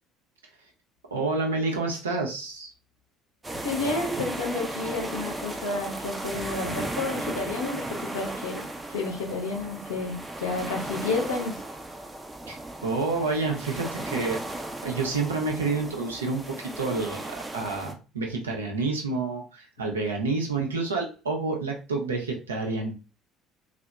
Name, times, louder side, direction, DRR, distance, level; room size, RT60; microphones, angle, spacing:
voice 1, 1.1-2.7 12.5-14.4 14.8-22.9, right 3 dB, 80° right, 1 dB, 0.5 m, -29 dB
sound 1, 3.4-17.9, right 2 dB, 15° right, 0.5 m, -36 dB
voice 2, 3.5-11.6, left 3 dB, 80° left, -2 dB, 0.7 m, -31 dB
2.7 x 2.0 x 2.2 m, 0.33 s
figure-of-eight pair, 60°, 0 cm